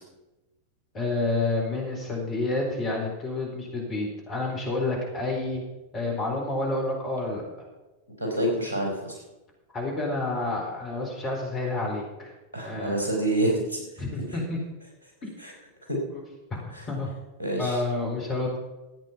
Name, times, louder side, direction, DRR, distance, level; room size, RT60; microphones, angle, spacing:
voice 1, 0.9-5.6 5.9-7.4 9.7-12.3 12.6-12.9 14.0-14.6 16.1-16.2 16.5-16.6 16.9-17.1 17.6-18.6, left 2 dB, 30° left, 0 dB, 4.3 m, -29 dB
voice 2, 8.2-9.2 12.5-14.4 15.4-15.5 15.9-16.0 16.7-16.9 17.4-17.8, right 1 dB, 80° left, -1 dB, 4.2 m, -28 dB
14.0 x 9.0 x 5.7 m, 1.1 s
figure-of-eight pair, 90°, 0 cm